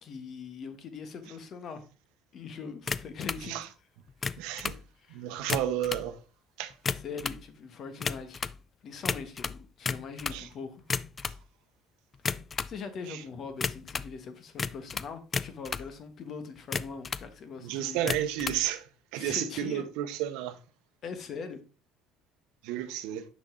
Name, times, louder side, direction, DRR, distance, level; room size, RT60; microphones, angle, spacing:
voice 1, 0.0-1.8 2.3-3.6 5.0-5.2 6.9-8.5 8.8-10.8 12.7-18.1 19.1-19.9 21.0-21.6, left 5 dB, 50° left, 1.3 m, -41 dB
sound 1, 2.9-3.4 4.1-4.8 5.4-6.1 6.7-7.4 8.0-8.6 9.1-10.4 10.8-11.4 12.2-12.8 13.6-14.1 14.6-15.9 16.6-17.3 18.0-18.6, left 5 dB, 30° left, 0.3 m, -33 dB
voice 2, 4.4-4.8 5.1-6.2 6.6-6.7 10.3-10.5 13.1-13.2 17.6-18.8 19.1-20.6 22.6-23.2, right 11 dB, 80° right, 0.8 m, -32 dB
6.1 x 5.4 x 3.7 m
supercardioid pair, 95°, 0 cm